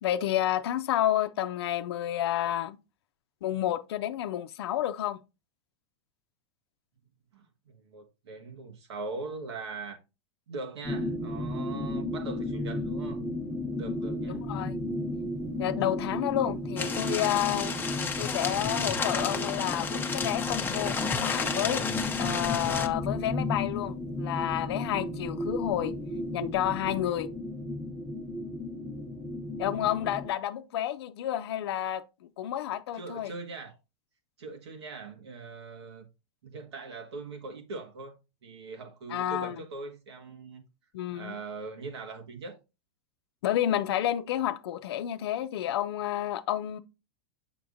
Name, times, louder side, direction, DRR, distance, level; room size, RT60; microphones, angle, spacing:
voice 1, 0.0-2.8 3.4-5.2 14.3-14.8 15.6-17.8 18.2-21.8 22.2-25.9 26.3-27.3 29.6-33.3 39.1-39.5 40.9-41.4 43.4-46.8, left 12 dB, 70° left, 0.6 m, -30 dB
voice 2, 7.3-10.0 10.5-13.2 13.8-14.4 32.9-33.7 34.4-36.1 36.4-40.6 41.1-42.6, right 3 dB, 85° right, 1.6 m, -41 dB
sound 1, 10.8-30.3, left 1 dB, 10° right, 1.1 m, -34 dB
sound 2, 16.8-22.9, left 5 dB, 15° left, 0.8 m, -32 dB
7.0 x 5.8 x 2.6 m
hypercardioid pair, 120°, 14 cm